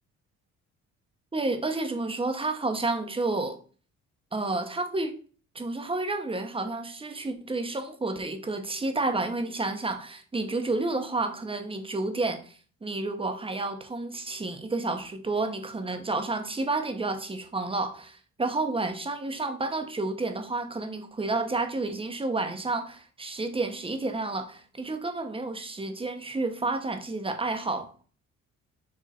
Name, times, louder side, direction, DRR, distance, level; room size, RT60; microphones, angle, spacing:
voice 1, 1.3-3.6 4.3-5.1 5.5-27.9, right 3 dB, 20° right, 1.1 m, -30 dB
7.6 x 2.9 x 4.3 m
cardioid pair, 90°, 30 cm